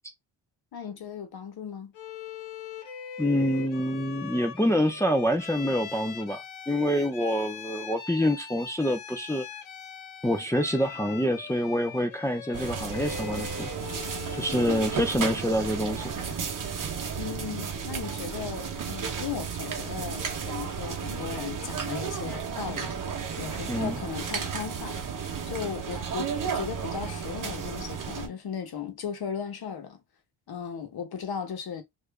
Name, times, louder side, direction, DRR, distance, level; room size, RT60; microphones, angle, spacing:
voice 1, 0.7-1.9 17.2-23.0 23.4-25.0 25.5-30.0 30.5-31.8, left 7 dB, 50° left, 1.0 m, -36 dB
Bowed string instrument, 1.9-15.1, left 8 dB, 75° left, 0.9 m, -41 dB
voice 2, 3.2-9.4 10.2-13.7 14.3-16.1 23.7-24.0, equal, 5° left, 0.4 m, -26 dB
sound 1, 12.5-28.3, right 6 dB, 40° right, 0.8 m, -33 dB
2.8 x 2.5 x 3.4 m
cardioid pair, 145°, 47 cm